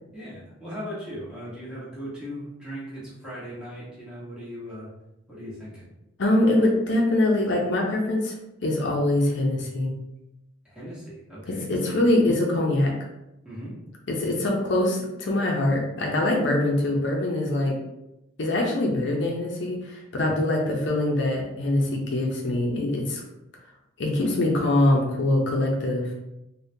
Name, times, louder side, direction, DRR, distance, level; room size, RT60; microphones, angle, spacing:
voice 1, 0.1-4.9 5.3-5.8 10.6-12.0 13.4-13.7 20.2-20.5, equal, 5° right, -9 dB, 1.0 m, -38 dB
voice 2, 6.2-8.3 8.6-9.9 11.5-12.9 14.1-17.8 18.4-23.2 24.0-26.1, left 1 dB, 60° left, -1 dB, 0.5 m, -23 dB
3.6 x 2.2 x 2.6 m, 0.90 s
head